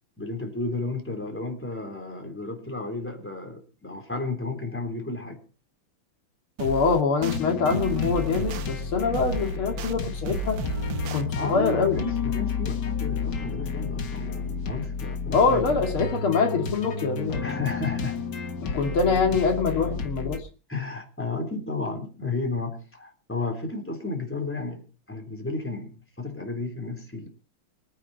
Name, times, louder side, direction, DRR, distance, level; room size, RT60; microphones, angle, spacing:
voice 1, 0.2-5.4 11.3-15.8 17.4-18.2 20.7-27.3, left 3 dB, 5° left, 2 dB, 3.7 m, -33 dB
voice 2, 6.6-10.6 11.1-12.0 15.3-17.5 18.7-20.4, left 4 dB, 80° left, 3 dB, 3.1 m, -24 dB
sound 1, 6.6-7.4 7.7-8.7 9.1-9.9 10.2-11.2, right 7 dB, 65° right, 1.6 m, -33 dB
sound 2, 7.2-20.4, left 5 dB, 55° left, 2.1 m, -31 dB
24.5 x 9.6 x 4.3 m, 0.37 s
omnidirectional pair, 2.3 m